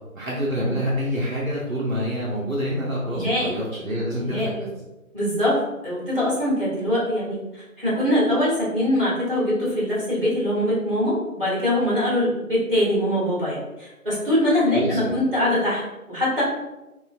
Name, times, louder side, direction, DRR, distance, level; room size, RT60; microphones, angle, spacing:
voice 1, 0.1-4.7 14.7-15.2, equal, 65° right, -6 dB, 0.7 m, -27 dB
voice 2, 3.1-3.5 4.2-4.7 5.1-7.4 7.8-16.4, left 1 dB, 40° right, -8 dB, 1.0 m, -23 dB
2.4 x 2.3 x 2.4 m, 1.0 s
figure-of-eight pair, 180°, 43 cm